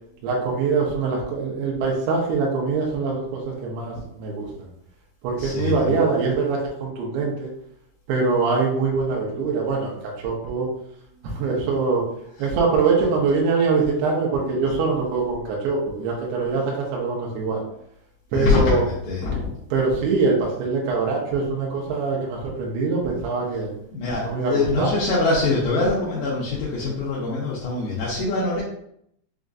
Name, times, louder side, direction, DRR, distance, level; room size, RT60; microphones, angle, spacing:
voice 1, 0.2-4.5 5.2-7.5 8.1-10.7 11.3-12.1 12.4-17.6 18.3-18.8 19.7-23.7 24.2-25.0, right 4 dB, 75° right, -2 dB, 2.4 m, -23 dB
voice 2, 5.4-6.0 12.4-12.5 18.3-19.5 23.9-28.6, left 3 dB, 75° left, -6 dB, 2.1 m, -24 dB
6.3 x 2.5 x 2.4 m, 0.72 s
omnidirectional pair, 4.7 m